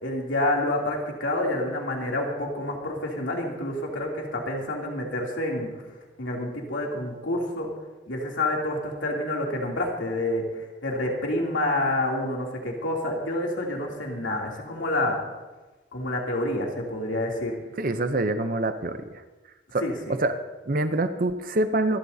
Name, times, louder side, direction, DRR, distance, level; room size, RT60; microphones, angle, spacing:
voice 1, 0.0-5.7 6.2-7.7 8.1-15.2 15.9-17.5 19.8-20.2, left 1 dB, 90° left, -1 dB, 2.9 m, -28 dB
voice 2, 17.8-19.2 19.7-22.0, right 2 dB, 45° right, 9 dB, 0.7 m, -26 dB
25.5 x 13.0 x 2.8 m, 1.2 s
head